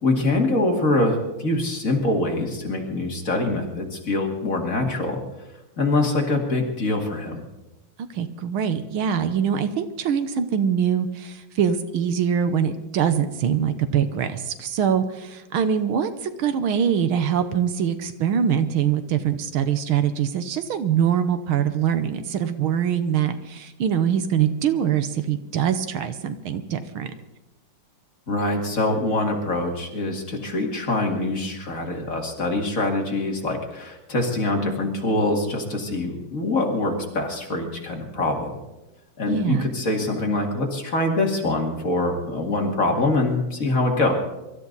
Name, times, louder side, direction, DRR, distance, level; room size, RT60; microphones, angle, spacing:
voice 1, 0.0-5.2 5.8-7.4 28.3-38.6 39.2-44.1, left 2 dB, 40° left, 1 dB, 2.7 m, -24 dB
voice 2, 8.1-27.1 39.3-39.6, right 8 dB, 75° right, 10 dB, 1.7 m, -23 dB
24.0 x 13.0 x 4.0 m, 1.0 s
omnidirectional pair, 2.4 m